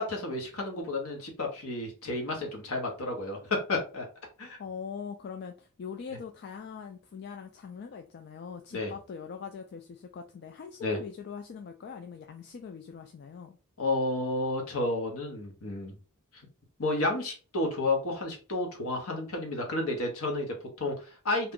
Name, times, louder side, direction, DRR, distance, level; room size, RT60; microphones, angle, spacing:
voice 1, 0.0-4.1 4.4-4.6 8.7-8.9 10.8-11.0 13.8-16.0 16.8-21.5, left 2 dB, 70° left, 1.0 m, -31 dB
voice 2, 4.6-13.6, left 6 dB, 50° left, 0.3 m, -42 dB
2.8 x 2.4 x 3.6 m
head